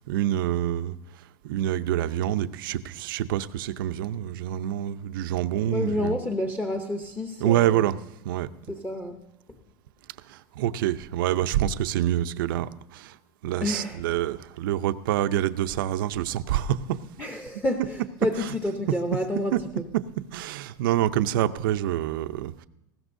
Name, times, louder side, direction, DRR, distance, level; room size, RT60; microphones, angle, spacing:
voice 1, 0.1-0.9 1.4-6.2 7.4-8.0 8.2-8.5 10.3-13.1 13.4-17.0 18.4-18.5 19.5-19.6 20.3-22.7, right 12 dB, 85° right, 11 dB, 0.6 m, -26 dB
voice 2, 5.7-7.9 8.7-9.2 13.6-14.0 17.2-19.7, left 1 dB, 10° left, 4 dB, 0.7 m, -29 dB
20.0 x 15.5 x 2.7 m, 0.86 s
supercardioid pair, 170°, 11 cm